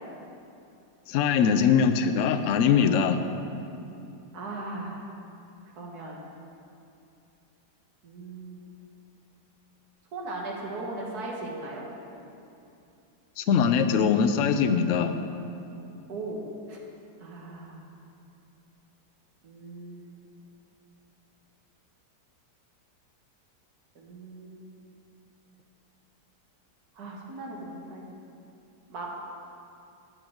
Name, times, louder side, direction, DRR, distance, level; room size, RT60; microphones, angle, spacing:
voice 1, 1.1-3.2 13.4-15.2, left 6 dB, 75° left, 8 dB, 0.7 m, -22 dB
voice 2, 4.3-5.0 5.8-6.2 8.0-8.7 10.1-11.9 16.1-16.8 17.2-17.9 19.4-20.3 24.0-24.8 26.9-28.1 28.9-29.1, right 2 dB, 65° right, -2 dB, 1.9 m, -38 dB
12.0 x 8.7 x 3.9 m, 2.7 s
omnidirectional pair, 1.8 m